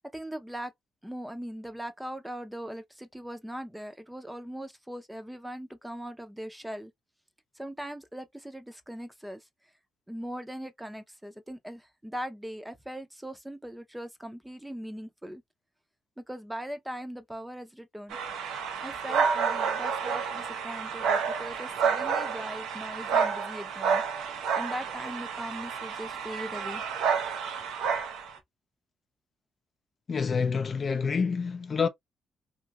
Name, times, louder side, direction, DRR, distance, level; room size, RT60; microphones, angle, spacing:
voice 1, 0.1-0.7 1.0-6.9 7.5-9.5 10.1-15.4 16.2-18.2 18.8-24.0 24.5-26.8, equal, 5° right, 0.6 m, -40 dB
sound 1, 18.1-28.4, right 6 dB, 85° right, 0.6 m, -30 dB
voice 2, 30.1-31.9, left 5 dB, 45° left, 0.4 m, -27 dB
2.9 x 2.6 x 2.3 m
cardioid pair, 90°, 0 cm